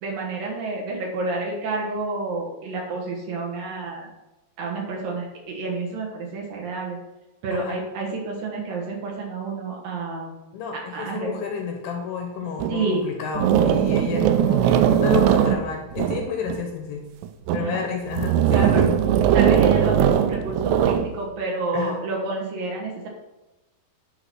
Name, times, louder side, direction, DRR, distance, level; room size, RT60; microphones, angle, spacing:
voice 1, 0.0-4.1 4.6-7.0 7.4-10.3 10.9-11.3 12.7-13.1 17.6-17.9 18.5-18.9 19.3-23.1, right 3 dB, 65° right, -1 dB, 2.8 m, -29 dB
voice 2, 10.5-17.0 17.5-18.9 21.7-22.0, left 6 dB, 75° left, 2 dB, 2.5 m, -30 dB
sound 1, 12.6-12.7 13.4-16.6 17.2-17.7 18.1-21.1, right 9 dB, 90° right, 2.8 m, -19 dB
10.5 x 3.9 x 5.9 m, 1.0 s
omnidirectional pair, 4.9 m